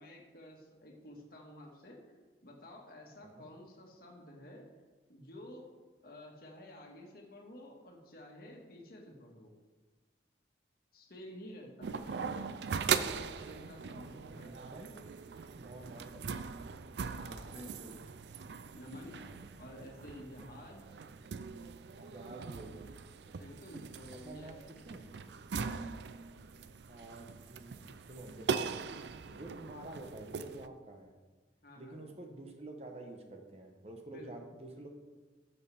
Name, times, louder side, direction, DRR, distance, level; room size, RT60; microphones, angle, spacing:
voice 1, 0.0-2.0 2.4-4.7 5.1-5.7 6.0-9.5 10.9-14.7 17.1-18.0 18.7-19.2 19.6-20.8 23.4-24.5 25.4-26.0 31.6-32.1 34.1-34.5, left 1 dB, 55° left, 0 dB, 1.7 m, -51 dB
sound 1, 11.8-30.7, right 6 dB, 75° right, 0.4 m, -40 dB
voice 2, 13.8-14.9 15.6-16.3 19.2-19.4 22.0-22.9 24.2-25.0 26.9-28.7 29.3-31.1 31.8-34.9, right 2 dB, 35° right, 3 dB, 0.9 m, -49 dB
12.5 x 6.9 x 3.5 m, 1.3 s
head